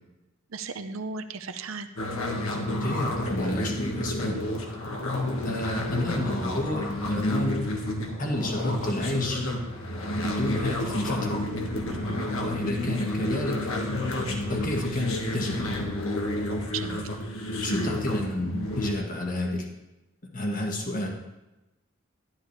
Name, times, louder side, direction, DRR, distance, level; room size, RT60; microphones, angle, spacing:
voice 1, 0.5-1.9 11.9-12.2 16.7-17.1, right 4 dB, 80° right, 9 dB, 0.8 m, -35 dB
sound 1, 2.0-18.9, left 1 dB, 85° left, 1.7 m, -30 dB
voice 2, 2.8-4.4 5.4-7.6 8.2-9.4 10.1-11.4 12.4-13.6 14.5-15.8 17.6-19.7 20.3-21.1, left 1 dB, 40° left, 0 dB, 1.8 m, -30 dB
12.0 x 11.5 x 3.3 m, 1.0 s
head